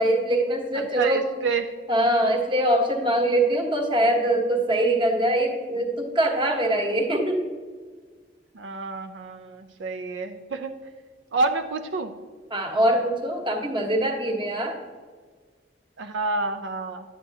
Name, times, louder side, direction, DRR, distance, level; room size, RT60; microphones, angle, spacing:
voice 1, 0.0-1.3 1.9-7.5 12.5-14.8, right 1 dB, 30° right, 2 dB, 1.1 m, -23 dB
voice 2, 0.8-1.7 6.9-7.0 8.5-10.7 11.3-12.1 16.0-17.0, right 3 dB, 85° right, 7 dB, 0.5 m, -28 dB
9.8 x 8.0 x 2.7 m, 1.5 s
head